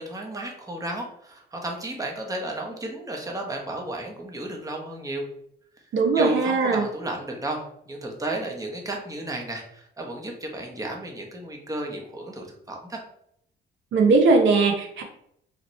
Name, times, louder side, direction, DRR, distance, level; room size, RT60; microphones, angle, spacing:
voice 1, 0.0-5.2 6.1-13.0, right 1 dB, 15° right, 1 dB, 1.0 m, -33 dB
voice 2, 5.9-6.9 13.9-15.0, right 3 dB, 70° right, 3 dB, 0.8 m, -19 dB
4.0 x 2.9 x 3.1 m, 0.71 s
cardioid pair, 90°, 20 cm